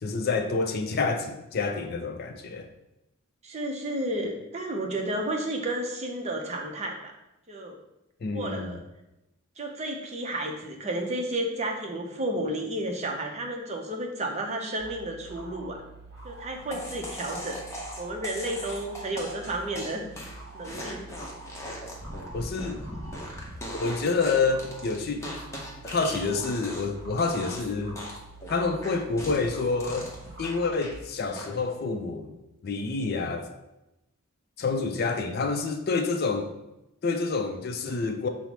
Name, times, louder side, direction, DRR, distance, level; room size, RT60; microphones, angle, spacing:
voice 1, 0.0-2.7 8.2-8.8 22.3-22.8 23.7-25.3 25.8-28.0 28.5-32.4 32.6-33.5 34.6-36.5 37.0-38.3, left 4 dB, 45° left, 6 dB, 0.4 m, -28 dB
voice 2, 3.4-7.1 7.5-7.8 8.3-8.8 9.6-15.8 16.2-17.6 18.0-20.0 20.5-21.1, right 1 dB, 30° right, 2 dB, 0.6 m, -32 dB
sound 1, 14.8-30.9, right 3 dB, 55° right, 1.0 m, -46 dB
sound 2, 16.7-26.9 27.2-27.7 28.0-31.0 31.3-31.8, equal, 15° left, 0.7 m, -39 dB
5.6 x 2.0 x 4.5 m, 0.92 s
head